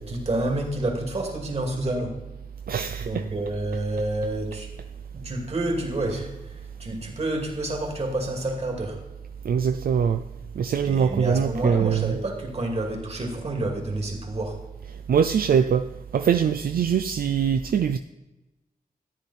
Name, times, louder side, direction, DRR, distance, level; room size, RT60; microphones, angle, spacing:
voice 1, 0.0-2.2 3.0-4.7 5.1-9.0 10.8-14.6, right 1 dB, 45° right, 2 dB, 2.5 m, -29 dB
voice 2, 2.7-3.2 9.4-10.2 10.6-12.2 15.1-15.9 16.1-18.0, right 7 dB, 75° right, 8 dB, 0.5 m, -22 dB
13.5 x 10.0 x 4.2 m, 1.0 s
wide cardioid pair, 135°, 15 cm